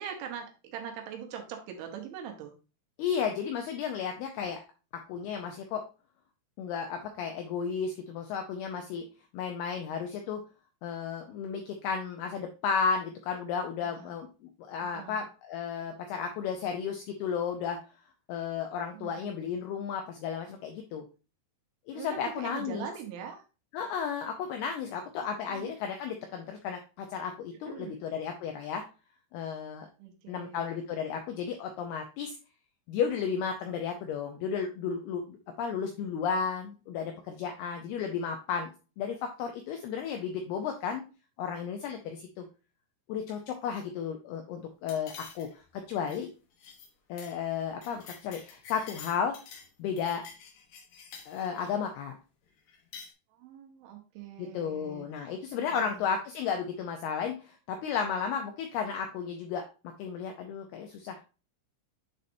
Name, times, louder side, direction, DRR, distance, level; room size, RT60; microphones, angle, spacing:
voice 1, 0.0-2.5 13.8-14.2 14.8-15.2 18.9-19.5 21.9-23.4 25.5-25.7 27.6-28.0 30.0-30.7 53.3-55.1 55.7-56.1, right 8 dB, 85° right, 3 dB, 3.5 m, -42 dB
voice 2, 3.0-4.6 5.1-5.8 6.6-9.1 9.3-10.4 10.8-17.8 18.3-21.1 21.9-22.9 23.7-28.8 29.3-29.9 30.3-32.4 32.9-38.7 39.0-41.0 41.4-42.5 43.1-45.5 45.7-46.3 47.1-49.4 49.8-50.2 51.3-52.1 54.4-59.6 60.0-61.2, left 6 dB, 90° left, 4 dB, 2.2 m, -33 dB
sound 1, 44.9-45.7 46.0-46.3 46.6-46.9 47.2-47.4 47.6-49.7 50.0-51.7 52.7-53.1, left 6 dB, 70° left, 2.0 m, -48 dB
9.7 x 4.1 x 2.6 m, 0.33 s
omnidirectional pair, 5.4 m